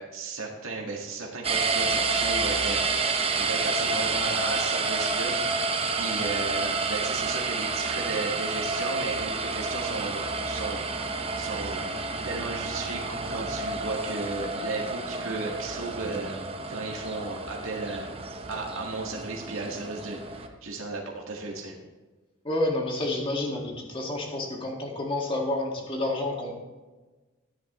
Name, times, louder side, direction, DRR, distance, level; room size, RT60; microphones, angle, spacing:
voice 1, 0.0-10.9 11.4-11.9 12.2-13.0 13.3-16.4 16.7-18.1 18.5-21.7, right 3 dB, 85° right, -1 dB, 1.7 m, -35 dB
sound 1, 1.4-20.5, right 4 dB, 30° right, 0.8 m, -29 dB
voice 2, 22.4-26.5, left 2 dB, 25° left, 0 dB, 1.8 m, -29 dB
14.0 x 10.5 x 3.1 m, 1.2 s
head